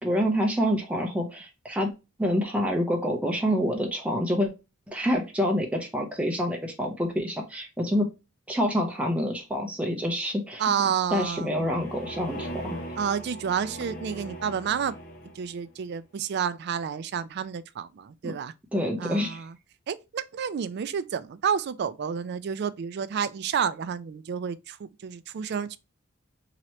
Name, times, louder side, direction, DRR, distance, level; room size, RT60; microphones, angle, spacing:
voice 1, 0.0-1.9 2.2-4.5 4.9-8.1 8.5-10.6 11.1-12.8 18.2-18.3 18.7-19.4, equal, 5° right, 0.7 m, -27 dB
voice 2, 10.6-11.7 13.0-15.0 15.4-18.5 19.0-19.5 19.9-25.8, right 7 dB, 55° right, 0.3 m, -30 dB
sound 1, 11.0-15.7, right 1 dB, 55° left, 1.0 m, -40 dB
3.0 x 2.9 x 4.3 m
head